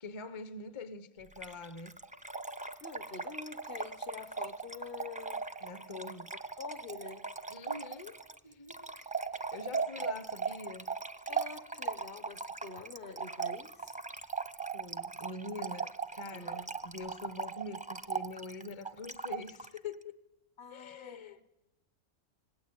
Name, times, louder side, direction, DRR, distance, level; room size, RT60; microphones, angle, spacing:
voice 1, 0.0-2.0 5.6-6.3 7.5-8.2 8.4-8.9 9.3-10.9 14.7-20.2 20.7-21.5, left 3 dB, 25° left, 0.7 m, -44 dB
Trickle dribble / Fill (with liquid), 1.3-19.8, right 5 dB, 10° right, 0.5 m, -39 dB
voice 2, 2.8-5.4 6.6-7.3 10.0-10.1 11.3-13.9 16.3-16.8 20.6-21.5, left 5 dB, 40° left, 1.1 m, -47 dB
26.0 x 19.5 x 8.7 m
omnidirectional pair, 1.4 m